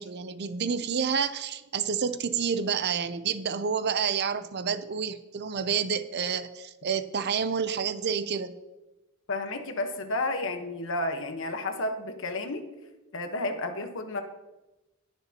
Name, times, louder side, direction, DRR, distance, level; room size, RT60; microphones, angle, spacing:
voice 1, 0.0-8.5, right 6 dB, 50° right, 12 dB, 0.6 m, -29 dB
voice 2, 9.3-12.7 13.1-14.2, left 2 dB, 60° left, 6 dB, 1.2 m, -31 dB
20.0 x 6.8 x 2.9 m, 1.0 s
head